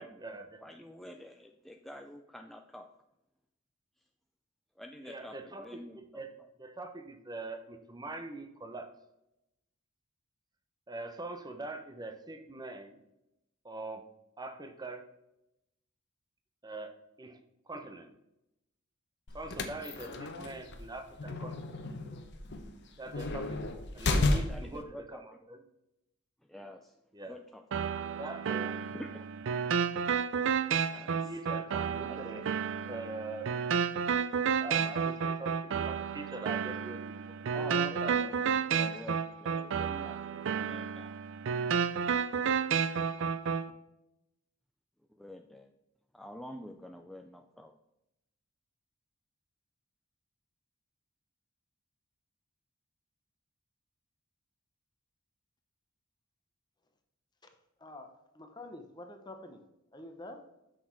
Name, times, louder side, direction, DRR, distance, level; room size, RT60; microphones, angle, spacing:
voice 1, 0.0-0.6 5.0-6.3 6.6-8.9 10.9-13.0 13.6-14.1 14.4-15.1 16.6-18.1 19.3-21.6 23.0-23.6 23.9-25.6 27.1-27.4 28.2-28.8 31.2-32.4 32.9-33.5 34.6-37.5 37.9-38.4, right 2 dB, 20° right, 8 dB, 0.8 m, -43 dB
voice 2, 0.6-2.9 4.8-6.2 24.2-25.2 26.5-27.0 27.3-27.6 28.9-29.3 30.9-31.3 32.0-32.5 37.5-38.3 38.6-41.2 42.5-42.6 43.2-43.3 45.2-45.7 46.1-47.8, left 1 dB, ahead, 3 dB, 0.4 m, -47 dB
sound 1, 19.3-24.8, left 2 dB, 55° left, 0.9 m, -33 dB
sound 2, 27.7-43.7, right 6 dB, 65° right, 0.4 m, -31 dB
voice 3, 57.8-59.6 59.9-60.4, left 1 dB, 20° left, 5 dB, 0.9 m, -47 dB
6.3 x 6.1 x 4.6 m, 0.88 s
head